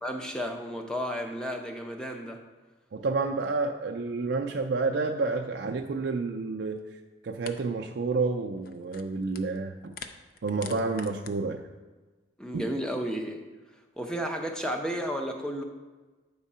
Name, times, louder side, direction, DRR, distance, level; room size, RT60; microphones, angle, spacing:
voice 1, 0.0-2.4 12.4-13.4 14.0-15.6, equal, 5° left, 3 dB, 0.6 m, -32 dB
voice 2, 2.9-6.8 7.2-10.0 10.4-11.6 12.5-12.6, right 3 dB, 65° right, 2 dB, 0.4 m, -29 dB
sound 1, 6.8-6.9 7.4-7.6 7.8-8.1 8.5-9.6 9.9-11.3, left 5 dB, 50° left, 0.4 m, -44 dB
8.1 x 3.6 x 5.4 m, 1.3 s
head